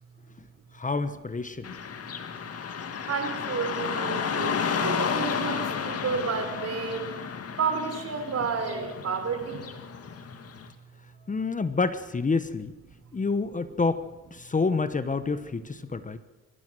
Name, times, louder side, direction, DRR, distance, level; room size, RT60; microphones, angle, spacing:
voice 1, 0.7-1.7 11.3-12.7 13.1-16.2, left 4 dB, 25° left, 12 dB, 1.2 m, -28 dB
Car passing by / Traffic noise roadway noise, 1.6-10.7, left 6 dB, 50° left, 2.2 m, -32 dB
voice 2, 3.1-7.1 7.6-9.7, right 5 dB, 55° right, 7 dB, 4.2 m, -31 dB
22.5 x 15.5 x 7.7 m, 1.1 s
cardioid pair, 90°, 30 cm